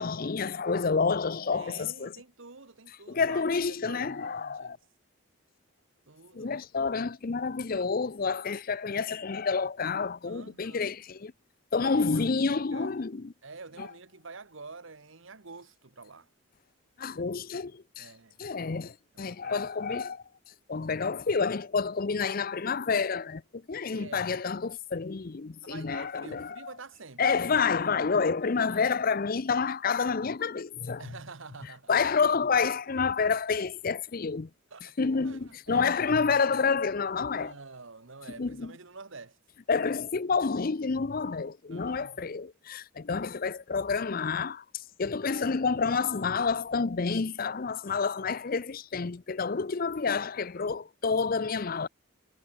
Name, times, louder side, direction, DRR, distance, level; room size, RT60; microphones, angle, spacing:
voice 1, 0.0-2.1 3.1-4.8 6.3-11.3 11.7-13.3 13.8-13.9 17.0-18.1 18.4-20.2 20.7-26.6 27.2-31.1 31.9-34.5 35.0-37.5 38.4-38.7 39.7-44.6 45.0-51.9, left 5 dB, 45° left, 0.5 m, -29 dB
voice 2, 1.5-3.4 3.7-4.8 6.1-7.0 10.3-10.9 11.8-13.0 13.4-16.3 18.0-18.4 19.1-20.1 23.9-24.3 25.6-27.3 28.7-28.9 31.0-31.9 34.7-35.0 35.2-35.9 37.3-39.4 41.7-42.3, right 4 dB, 65° right, 1.4 m, -48 dB
head